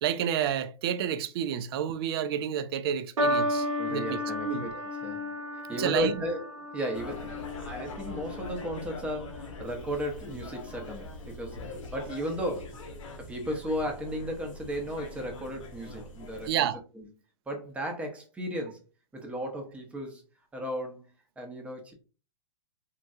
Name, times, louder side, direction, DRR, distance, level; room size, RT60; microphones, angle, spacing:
voice 1, 0.0-4.6 5.8-6.2 16.5-16.8, right 9 dB, 50° right, 0.4 m, -30 dB
sound 1, 3.2-9.7 10.5-10.9, left 1 dB, 90° right, 0.8 m, -34 dB
voice 2, 3.8-5.3 5.7-6.5 6.7-12.8 13.2-16.7 16.9-17.1 17.5-18.8 19.1-20.2 20.5-21.1 21.4-21.9, equal, 5° right, 0.7 m, -35 dB
sound 2, 6.9-16.5, left 2 dB, 75° left, 0.9 m, -43 dB
3.6 x 2.2 x 2.6 m
hypercardioid pair, 135°, 17 cm